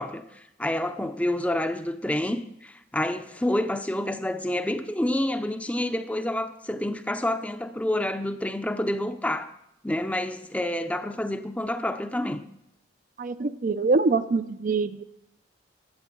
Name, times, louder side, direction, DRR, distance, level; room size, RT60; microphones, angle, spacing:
voice 1, 0.0-9.5 9.8-12.4, left 1 dB, 5° left, 0.6 m, -28 dB
voice 2, 13.2-15.0, right 4 dB, 40° right, 0.4 m, -24 dB
12.0 x 7.9 x 7.6 m
head